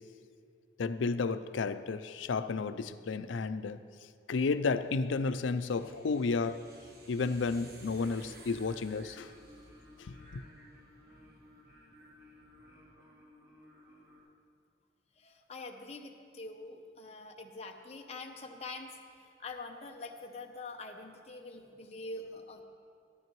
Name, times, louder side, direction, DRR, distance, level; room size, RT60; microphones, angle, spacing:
voice 1, 0.8-3.8 4.3-6.6 7.1-9.3 10.1-10.4, left 4 dB, 85° left, 0.4 m, -32 dB
sound 1, 4.4-13.0, right 1 dB, 55° right, 1.2 m, -57 dB
Singing, 7.9-14.2, left 1 dB, 20° right, 3.1 m, -57 dB
voice 2, 15.2-19.0 19.4-22.6, left 3 dB, 35° left, 0.7 m, -45 dB
15.0 x 12.0 x 3.1 m
head